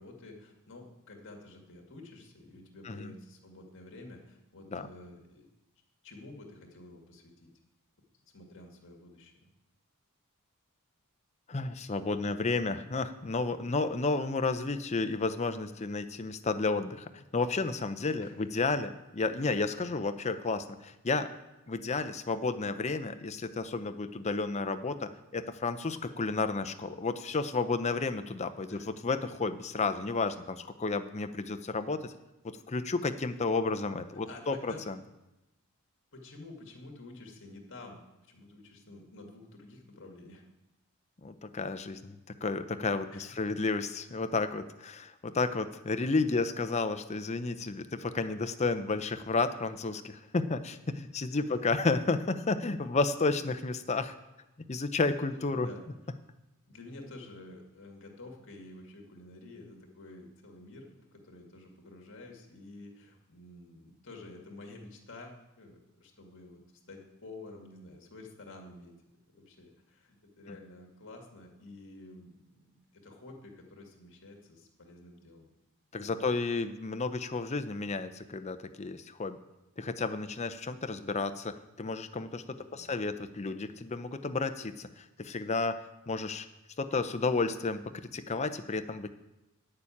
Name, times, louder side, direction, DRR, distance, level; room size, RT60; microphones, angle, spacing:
voice 1, 0.0-5.5 6.0-7.5 8.3-9.5 15.7-15.8 18.2-18.4 28.7-28.9 33.2-33.4 34.1-34.8 36.1-38.0 38.3-40.4 43.1-43.6 51.1-51.6 55.3-55.8 56.7-66.6 66.9-68.9 69.3-75.5 75.9-76.3 82.5-83.0, left 2 dB, 55° left, 2 dB, 1.9 m, -50 dB
voice 2, 11.5-21.3 21.7-32.1 32.4-35.0 41.2-54.1 54.7-55.7 75.9-79.4 79.8-85.8 86.1-86.5 86.8-87.8 88.1-89.1, left 3 dB, 30° left, 10 dB, 0.6 m, -32 dB
9.9 x 6.8 x 8.5 m, 0.97 s
head